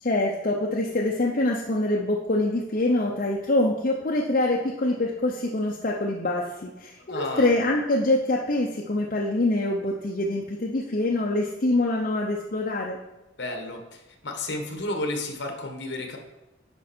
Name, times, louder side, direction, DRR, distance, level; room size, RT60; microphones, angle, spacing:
voice 1, 0.0-13.0, left 2 dB, 45° left, -1 dB, 0.7 m, -25 dB
voice 2, 7.1-7.5 13.4-16.2, left 2 dB, 60° left, 4 dB, 1.4 m, -32 dB
9.9 x 5.4 x 4.4 m, 1.0 s
head